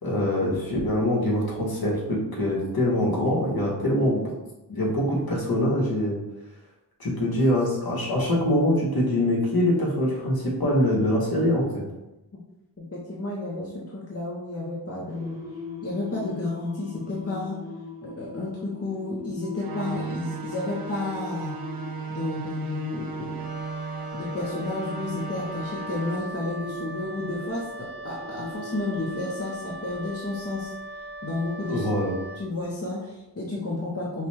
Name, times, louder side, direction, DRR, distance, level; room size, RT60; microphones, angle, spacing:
voice 1, 0.0-4.3 4.7-6.2 7.0-11.8 31.7-32.1, left 1 dB, 55° left, -3 dB, 1.4 m, -24 dB
voice 2, 12.9-15.4 15.8-17.6 18.0-21.6 22.1-23.4 24.1-30.7 31.2-31.9 32.4-34.3, left 2 dB, 35° left, -4 dB, 0.8 m, -31 dB
Singing, 15.1-29.1, left 4 dB, 10° right, 1.0 m, -42 dB
sound 1, 19.6-26.2, right 5 dB, 55° right, 0.6 m, -36 dB
Wind instrument woodwind instrument, 23.4-32.5, equal, 80° left, 1.1 m, -39 dB
5.7 x 2.2 x 3.4 m, 0.95 s
wide cardioid pair, 85°, 42 cm